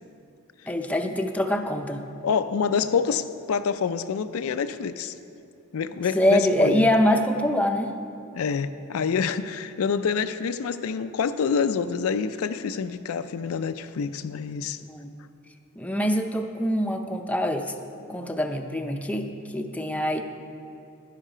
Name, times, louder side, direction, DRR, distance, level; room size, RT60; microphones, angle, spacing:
voice 1, 0.7-2.0 6.1-7.9 14.9-15.1 15.8-17.7 18.1-20.2, left 1 dB, 5° left, 4 dB, 0.5 m, -24 dB
voice 2, 2.2-5.1 5.7-6.9 8.3-14.8, left 6 dB, 70° left, 11 dB, 0.4 m, -27 dB
11.0 x 11.0 x 4.9 m, 2.6 s
head